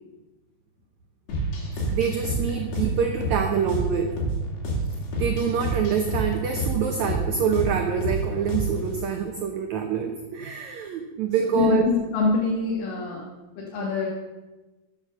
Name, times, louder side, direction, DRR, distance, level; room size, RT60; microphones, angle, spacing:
sound 1, 1.3-9.0, right 1 dB, 90° left, 5.0 m, -28 dB
voice 1, 1.9-4.1 5.2-11.9, right 7 dB, 80° right, 5 dB, 1.6 m, -26 dB
voice 2, 11.4-13.2 13.6-14.1, left 5 dB, 65° left, -4 dB, 3.5 m, -24 dB
13.5 x 8.2 x 6.8 m, 1.1 s
omnidirectional pair, 4.5 m